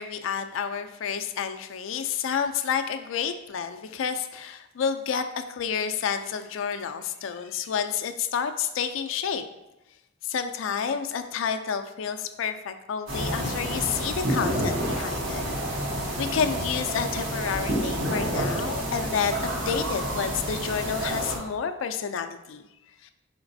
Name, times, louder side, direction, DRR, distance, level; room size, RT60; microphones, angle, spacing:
voice 1, 0.0-9.4 10.2-15.4 15.7-15.9 16.2-22.6 23.0-23.1, left 7 dB, 70° left, 8 dB, 0.4 m, -30 dB
sound 1, 13.1-21.4, right 1 dB, 70° right, 1.0 m, -29 dB
5.0 x 3.9 x 2.6 m, 0.96 s
head